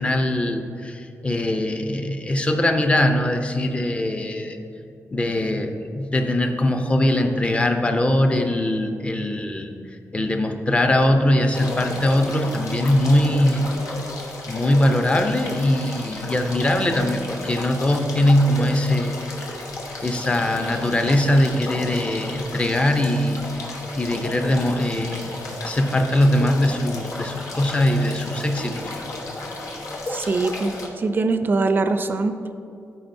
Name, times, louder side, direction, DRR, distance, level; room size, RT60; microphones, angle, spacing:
voice 1, 0.0-4.6 5.1-9.7 10.1-13.7 14.5-19.2 20.0-23.4 24.0-28.9, left 1 dB, 20° left, 5 dB, 0.6 m, -21 dB
sound 1, 11.5-30.9, left 2 dB, 85° left, 1.1 m, -33 dB
voice 2, 30.1-32.4, right 3 dB, 40° right, 8 dB, 0.4 m, -22 dB
13.0 x 4.7 x 2.7 m, 2.6 s
wide cardioid pair, 110°, 6 cm